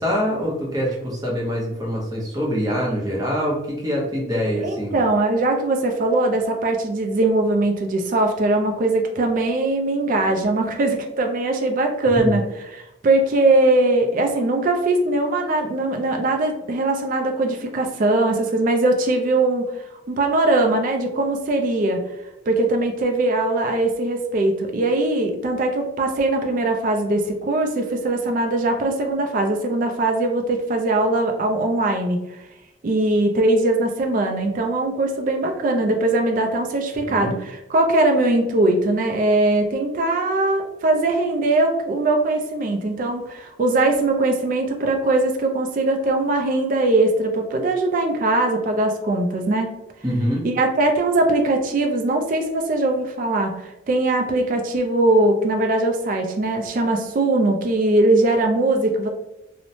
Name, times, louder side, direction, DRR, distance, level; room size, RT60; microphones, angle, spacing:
voice 1, 0.0-5.0 12.1-12.3 37.1-37.3 50.0-50.5, equal, 20° right, -4 dB, 0.7 m, -24 dB
voice 2, 4.6-12.4 12.7-19.7 20.1-22.0 22.5-32.2 32.8-49.8 50.4-59.1, right 2 dB, 40° right, 3 dB, 0.3 m, -21 dB
2.9 x 2.0 x 2.6 m, 0.92 s
head